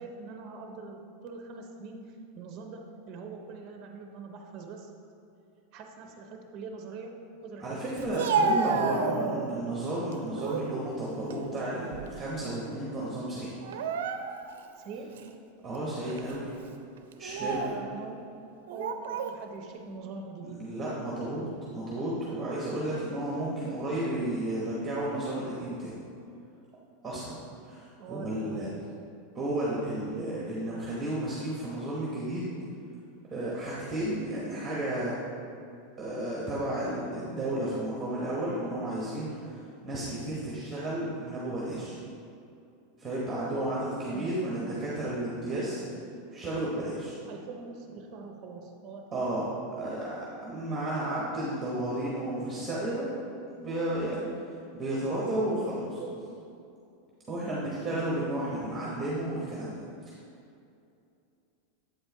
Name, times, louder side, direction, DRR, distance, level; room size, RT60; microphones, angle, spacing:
voice 1, 0.0-4.9 5.7-7.8 8.7-9.0 14.8-15.4 17.4-18.3 18.7-20.8 28.0-28.9 44.1-44.3 47.3-49.4 55.8-56.3 57.4-57.7, right 4 dB, 35° right, 3 dB, 0.6 m, -43 dB
voice 2, 7.6-13.5 15.6-16.5 17.2-17.6 20.5-26.0 27.0-28.7 29.3-32.5 33.3-35.1 36.0-42.0 43.0-45.9 46.3-47.2 49.1-49.5 49.8-53.2 53.6-54.3 54.7-56.0 57.3-59.8, right 1 dB, 15° right, -6 dB, 1.0 m, -32 dB
Speech, 8.0-9.6 10.1-10.7 11.1-12.4 12.6-12.8 13.6-14.6 15.2-15.3 16.1-16.3 17.1-17.8 18.7-19.4, right 4 dB, 80° right, 0.4 m, -31 dB
7.9 x 4.4 x 3.4 m, 2.6 s
supercardioid pair, 150°, 0 cm